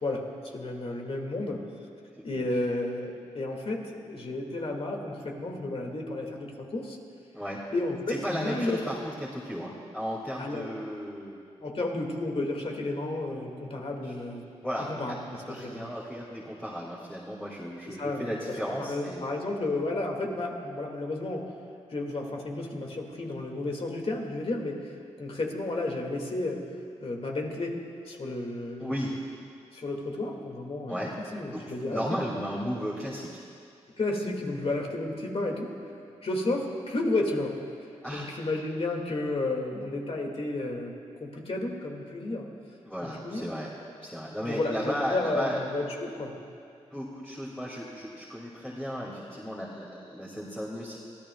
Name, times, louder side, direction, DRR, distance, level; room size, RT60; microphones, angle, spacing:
voice 1, 0.0-1.6 2.2-7.0 7.7-8.8 10.4-10.7 11.6-14.4 14.8-15.9 17.9-21.4 21.9-26.6 27.0-27.8 28.1-29.0 29.7-32.2 34.0-35.7 36.2-37.5 38.1-40.9 41.2-42.5 43.0-43.5 44.4-46.4, left 2 dB, 50° left, 1 dB, 2.2 m, -32 dB
voice 2, 8.2-11.4 14.0-14.1 14.6-14.9 15.5-19.2 28.8-29.1 30.9-31.1 31.5-33.4 38.0-38.3 42.9-43.7 44.0-45.6 46.9-51.0, equal, 5° left, -6 dB, 2.5 m, -35 dB
24.0 x 14.0 x 2.4 m, 2.4 s
cardioid pair, 50°, 12 cm